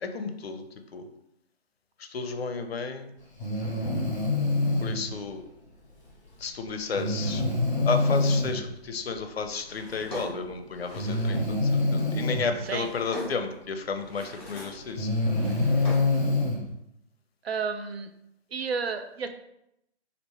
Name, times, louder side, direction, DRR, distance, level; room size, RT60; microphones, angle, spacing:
voice 1, 0.0-0.7 0.9-1.0 2.0-3.1 4.8-5.4 6.4-7.4 7.9-11.4 11.7-15.1, left 4 dB, 65° left, 7 dB, 0.5 m, -32 dB
Breathing, 3.4-5.0 7.0-8.6 9.9-10.0 10.9-12.5 14.0-14.1 14.8-16.6, left 2 dB, 25° left, 0.9 m, -25 dB
Drawer open or close, 9.7-11.5 12.3-13.6 14.0-14.9 15.2-16.3, left 1 dB, ahead, 0.6 m, -42 dB
voice 2, 17.4-18.1 18.5-19.3, right 5 dB, 65° right, 7 dB, 0.4 m, -31 dB
3.2 x 2.5 x 3.1 m, 0.81 s
figure-of-eight pair, 145°, 33 cm